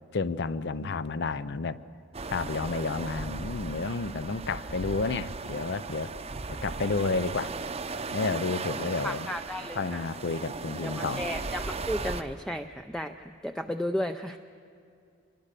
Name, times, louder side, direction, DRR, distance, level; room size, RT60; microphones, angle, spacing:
voice 1, 0.1-1.8 2.3-6.1 6.5-7.5 8.1-9.3 9.8-11.2, left 4 dB, 60° left, 15 dB, 0.6 m, -31 dB
sound 1, 2.1-12.2, right 3 dB, 30° right, 0.7 m, -36 dB
voice 2, 9.0-10.0 10.8-14.4, equal, 5° left, 6 dB, 0.5 m, -34 dB
25.5 x 21.5 x 6.8 m, 2.4 s
head